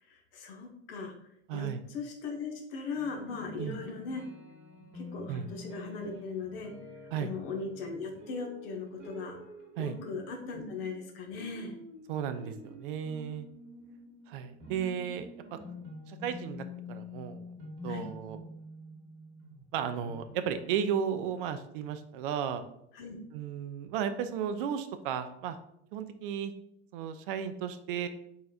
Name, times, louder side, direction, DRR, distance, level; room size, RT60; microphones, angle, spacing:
voice 1, 0.1-1.1 1.5-4.2 4.9-6.7 7.1-9.4 9.8-11.7 14.7-15.1 17.9-18.0 22.9-23.2, left 4 dB, 55° left, 2 dB, 1.0 m, -39 dB
voice 2, 1.5-1.8 3.5-3.8 5.3-5.5 7.1-7.3 9.8-10.0 12.1-13.5 14.3-15.6 16.1-17.5 17.8-18.4 19.7-22.6 23.3-25.6 25.9-26.5 26.9-28.1, right 8 dB, 50° right, 10 dB, 0.4 m, -34 dB
sound 1, 2.9-20.6, left 2 dB, 35° right, 1.1 m, -47 dB
4.2 x 3.9 x 2.4 m, 0.76 s
figure-of-eight pair, 80°, 36 cm